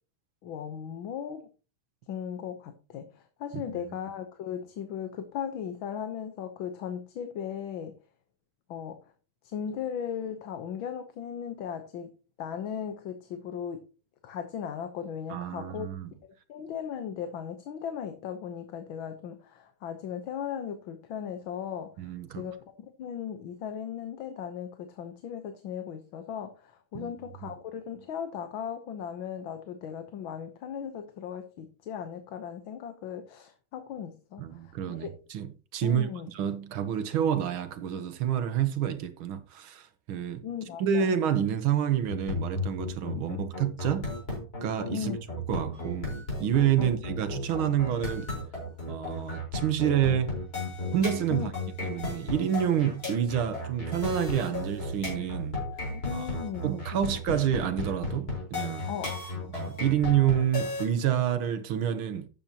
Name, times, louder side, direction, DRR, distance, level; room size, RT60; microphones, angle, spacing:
voice 1, 0.4-1.5 2.1-7.9 8.7-9.0 9.4-12.1 12.4-13.9 14.2-15.9 16.2-22.1 22.4-22.7 23.0-35.1 35.8-36.3 40.4-41.1 43.1-43.3 44.9-45.2 46.8-46.9 51.3-51.5 55.9-57.4 58.9-59.5, left 8 dB, 75° left, 1.8 m, -37 dB
voice 2, 15.3-16.1 22.0-22.4 26.9-27.1 34.4-36.1 36.3-40.4 40.8-44.1 44.6-45.1 45.5-46.1 46.4-48.3 48.9-50.3 50.9-51.5 51.8-55.6 56.1-56.3 56.6-58.9 59.5-62.3, right 9 dB, 80° right, 1.9 m, -28 dB
sound 1, 42.1-60.9, left 2 dB, 45° left, 5.1 m, -34 dB
12.0 x 8.8 x 2.9 m
omnidirectional pair, 2.2 m